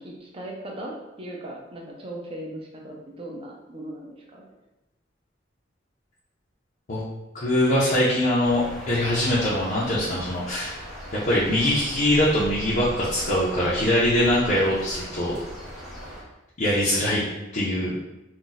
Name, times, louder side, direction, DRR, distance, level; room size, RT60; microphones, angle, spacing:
voice 1, 0.0-4.4, right 1 dB, 30° right, -1 dB, 0.6 m, -38 dB
voice 2, 7.3-10.7 11.2-15.4 16.6-17.2 17.5-17.9, left 1 dB, 45° left, -8 dB, 0.6 m, -22 dB
sound 1, 8.4-16.2, equal, ahead, 0.8 m, -39 dB
2.5 x 2.2 x 3.9 m, 0.97 s
head